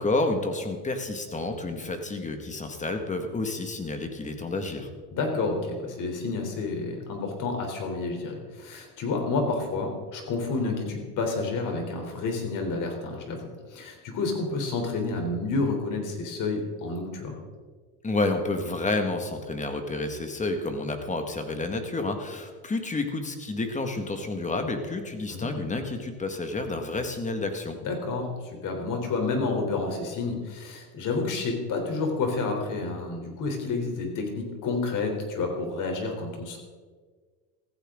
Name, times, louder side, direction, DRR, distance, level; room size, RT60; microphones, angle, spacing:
voice 1, 0.0-4.9 18.0-27.8, left 2 dB, 15° left, 6 dB, 1.8 m, -30 dB
voice 2, 5.1-17.3 25.3-25.5 27.8-36.6, left 3 dB, 45° left, 3 dB, 3.6 m, -30 dB
15.0 x 15.0 x 3.8 m, 1.5 s
supercardioid pair, 125°, 44 cm